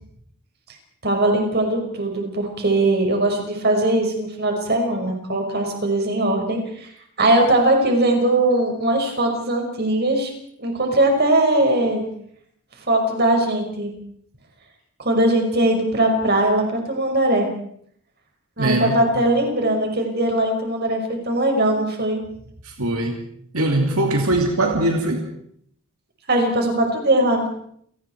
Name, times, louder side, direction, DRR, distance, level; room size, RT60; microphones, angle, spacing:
voice 1, 1.0-6.9 7.2-10.3 10.6-12.0 12.9-13.9 15.0-17.5 18.6-22.2 26.3-27.5, right 1 dB, 45° right, 2 dB, 5.6 m, -20 dB
voice 2, 18.6-19.0 22.6-23.2 23.5-25.3, right 1 dB, 80° right, 3 dB, 2.6 m, -21 dB
30.0 x 19.0 x 4.7 m, 0.66 s
head